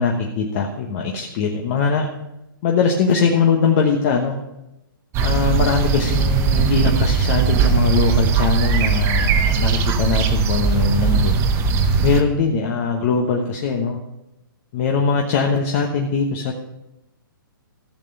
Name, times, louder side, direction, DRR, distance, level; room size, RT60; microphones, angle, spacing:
voice 1, 0.0-2.0 2.6-4.4 5.2-11.4 12.0-14.0 14.7-16.5, left 5 dB, 40° left, 1 dB, 1.2 m, -21 dB
sound 1, 5.1-12.2, right 5 dB, 20° right, 0.9 m, -19 dB
15.0 x 6.8 x 5.5 m, 0.90 s
hypercardioid pair, 150°, 12 cm